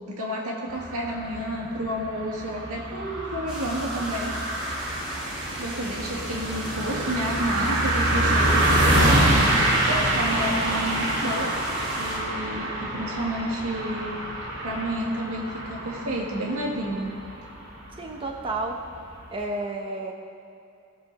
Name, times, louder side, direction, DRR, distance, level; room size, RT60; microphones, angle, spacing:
voice 1, 0.1-4.3 5.5-11.7 12.0-14.2 14.6-17.1, right 1 dB, 85° right, -1 dB, 2.0 m, -30 dB
sound 1, 0.7-19.3, right 1 dB, 55° right, 2.7 m, -26 dB
sound 2, 3.5-12.2, equal, 5° right, 2.7 m, -38 dB
voice 2, 18.0-18.8 19.3-20.1, right 2 dB, 25° right, 0 dB, 0.8 m, -31 dB
18.5 x 6.7 x 4.1 m, 2.5 s
head